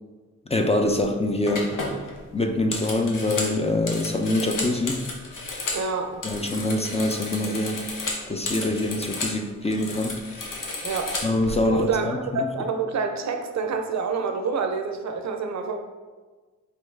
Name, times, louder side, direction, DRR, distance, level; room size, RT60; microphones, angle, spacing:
voice 1, 0.5-1.8 2.3-5.1 6.2-7.8 8.3-10.2 10.5-10.6 11.2-12.5, left 2 dB, 20° left, 4 dB, 0.4 m, -25 dB
sound 1, 0.8-1.0 1.5-5.9 6.1-9.4 9.6-11.5, left 2 dB, 75° left, 0.8 m, -32 dB
voice 2, 5.7-6.2 10.8-11.1 11.7-15.8, right 4 dB, 60° right, 5 dB, 0.5 m, -27 dB
3.9 x 3.1 x 3.2 m, 1.3 s
supercardioid pair, 40°, 32 cm